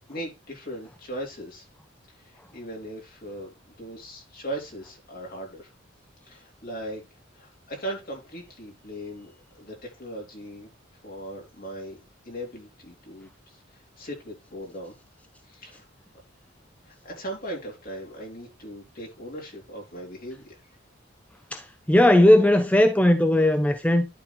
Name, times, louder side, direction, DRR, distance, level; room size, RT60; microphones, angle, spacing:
voice 1, 0.1-1.7 2.2-5.7 6.3-7.0 7.3-10.7 11.0-12.0 12.2-14.9 15.5-15.8 16.8-20.6, right 1 dB, 50° left, 3.7 m, -38 dB
voice 2, 21.5-24.1, left 1 dB, 5° left, 0.5 m, -18 dB
11.0 x 4.1 x 4.1 m
head